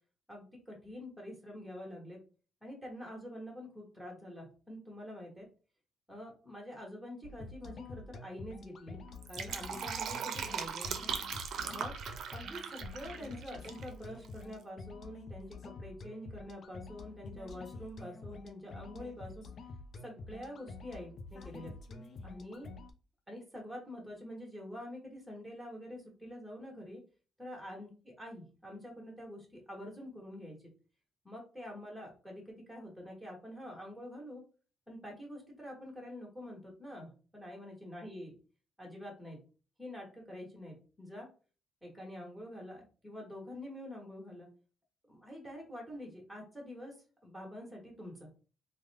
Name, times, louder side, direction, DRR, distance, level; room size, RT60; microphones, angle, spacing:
voice 1, 0.3-2.2 2.6-5.5 6.1-9.0 9.3-10.9 11.7-11.9 12.3-19.5 20.0-21.7 22.2-22.7 23.3-27.0 27.4-30.6 31.2-34.4 34.9-38.3 38.8-39.4 39.8-41.3 41.8-44.5 45.1-46.9 47.2-48.3, left 1 dB, ahead, -1 dB, 1.3 m, -46 dB
sound 1, 7.2-22.9, left 3 dB, 55° left, 0.5 m, -48 dB
Fill (with liquid), 9.1-13.9 14.2-14.3, right 7 dB, 70° right, 0.5 m, -39 dB
3.4 x 2.1 x 3.3 m, 0.37 s
cardioid pair, 90°, 0 cm